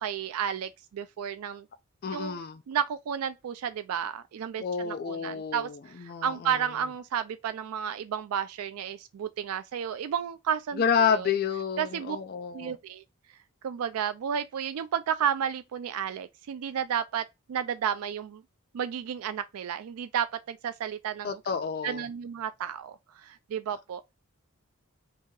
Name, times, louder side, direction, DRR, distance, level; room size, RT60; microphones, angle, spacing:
voice 1, 0.0-1.7 2.1-2.4 2.7-11.3 11.8-12.2 12.5-13.0 13.6-18.4 18.7-21.4 21.8-24.1, right 8 dB, 80° right, 0.3 m, -32 dB
voice 2, 2.0-2.6 4.6-6.6 10.8-12.7 21.2-22.0, left 7 dB, 40° left, 0.3 m, -29 dB
2.9 x 2.7 x 3.6 m
head